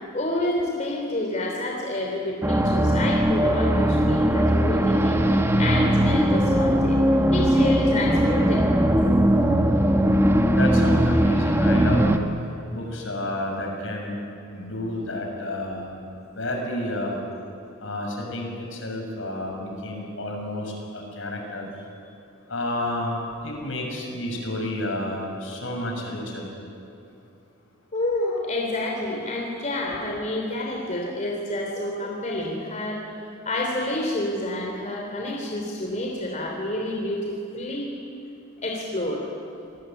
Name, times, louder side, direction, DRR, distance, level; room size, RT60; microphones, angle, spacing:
voice 1, 0.1-7.0 7.3-8.8 27.9-33.1 33.4-37.9 38.6-39.3, left 1 dB, 35° left, -1 dB, 3.4 m, -29 dB
sound 1, 2.4-12.2, equal, 15° right, 1.5 m, -20 dB
voice 2, 10.5-12.1 12.7-14.2 14.5-15.9 16.3-17.2 17.8-21.8 22.5-23.2 23.4-26.5, left 1 dB, 70° left, 1 dB, 6.7 m, -30 dB
27.5 x 20.0 x 9.2 m, 2.8 s
head